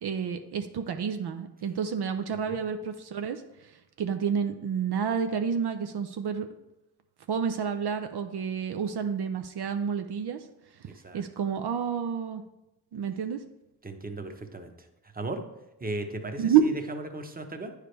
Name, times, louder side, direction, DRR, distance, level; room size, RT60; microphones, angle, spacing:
voice 1, 0.0-6.5 7.3-10.5 10.8-10.9 11.1-12.4 12.9-13.4 16.4-16.6, right 7 dB, 70° right, 7 dB, 0.6 m, -29 dB
voice 2, 10.8-11.2 13.8-14.7 15.1-15.4 15.8-17.7, right 2 dB, 20° right, 6 dB, 0.9 m, -36 dB
9.0 x 4.9 x 3.3 m, 0.94 s
cardioid pair, 55°, 41 cm